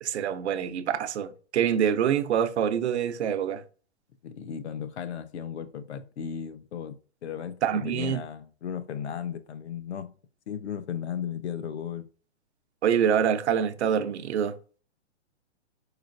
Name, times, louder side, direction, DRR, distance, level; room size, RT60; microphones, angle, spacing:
voice 1, 0.0-3.6 7.6-8.2 12.8-14.6, right 8 dB, 70° right, 0.7 m, -25 dB
voice 2, 4.2-10.1 10.5-12.1, left 8 dB, 65° left, 0.8 m, -35 dB
4.9 x 4.2 x 2.5 m
hypercardioid pair, 160°, 35 cm